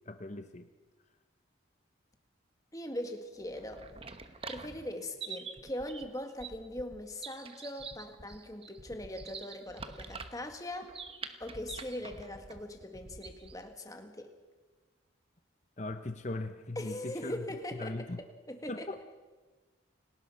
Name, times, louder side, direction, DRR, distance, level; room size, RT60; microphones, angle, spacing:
voice 1, 0.0-0.7 15.8-17.4 17.8-18.2 18.7-19.0, left 2 dB, 35° left, 8 dB, 0.9 m, -39 dB
voice 2, 2.7-3.9 4.5-10.9 11.4-14.3 16.8-18.9, left 1 dB, 15° left, 5 dB, 1.9 m, -41 dB
sound 1, 3.4-13.6, right 5 dB, 30° right, 1.2 m, -46 dB
29.5 x 19.0 x 5.8 m, 1.3 s
head